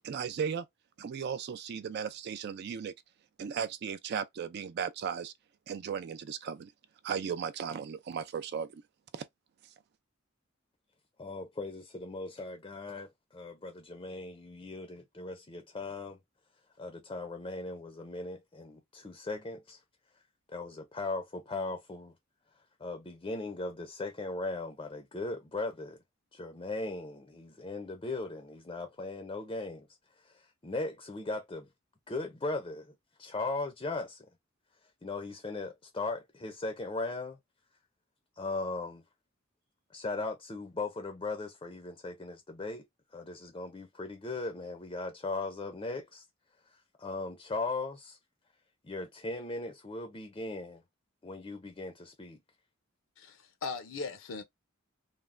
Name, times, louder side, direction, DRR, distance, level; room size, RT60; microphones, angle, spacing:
voice 1, 0.0-0.7 1.0-2.9 3.4-5.3 5.7-6.7 7.0-8.8 9.1-9.2, right 7 dB, 55° right, 0.3 m, -36 dB
voice 2, 11.2-16.2 16.8-19.8 20.5-22.1 22.8-26.0 26.3-29.9 30.2-31.7 32.1-32.9 33.2-34.3 35.0-37.4 38.4-39.0 39.9-42.8 43.1-46.2 47.0-48.2 48.8-50.8 51.2-52.4, left 2 dB, 25° left, 0.5 m, -38 dB
voice 3, 53.2-54.4, left 4 dB, 75° left, 0.6 m, -39 dB
3.3 x 2.0 x 2.4 m
head